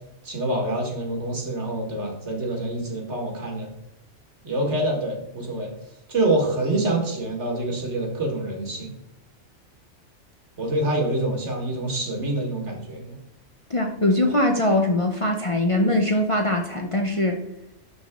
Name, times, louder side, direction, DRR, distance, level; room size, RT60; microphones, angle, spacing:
voice 1, 0.2-3.7 4.4-5.7 6.1-8.9 10.6-13.2, right 1 dB, 65° right, 1 dB, 2.0 m, -26 dB
voice 2, 13.7-17.4, left 1 dB, 35° left, 2 dB, 0.6 m, -22 dB
11.5 x 3.9 x 3.6 m, 0.83 s
omnidirectional pair, 1.3 m